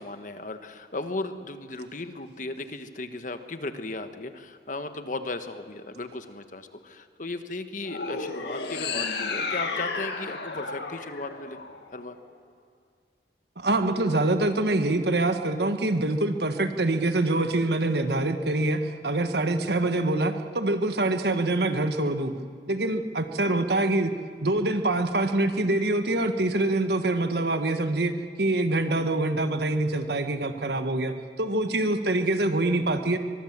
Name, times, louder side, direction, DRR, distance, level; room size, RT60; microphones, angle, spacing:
voice 1, 0.0-11.6 11.9-12.2, left 2 dB, 45° left, 8 dB, 1.4 m, -36 dB
sound 1, 7.8-12.2, left 4 dB, 70° left, 2.0 m, -33 dB
voice 2, 13.6-22.3 22.7-24.1 24.4-33.2, right 2 dB, 65° right, 7 dB, 1.5 m, -25 dB
24.0 x 21.5 x 7.4 m, 2.1 s
head